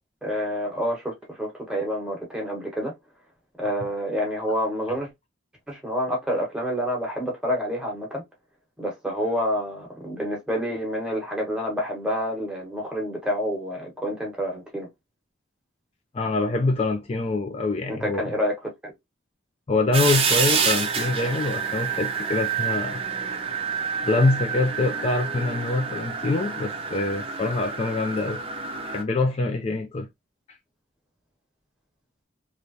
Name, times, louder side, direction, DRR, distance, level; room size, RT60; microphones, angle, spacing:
voice 1, 0.2-2.9 3.6-5.1 5.7-8.2 8.8-14.9 17.9-18.9, equal, 5° right, 1.2 m, -28 dB
voice 2, 16.1-18.2 19.7-23.0 24.0-30.1 30.5-30.6, left 3 dB, 30° left, 0.3 m, -25 dB
sound 1, 19.9-29.0, right 6 dB, 30° right, 0.5 m, -28 dB
3.2 x 2.5 x 2.7 m
head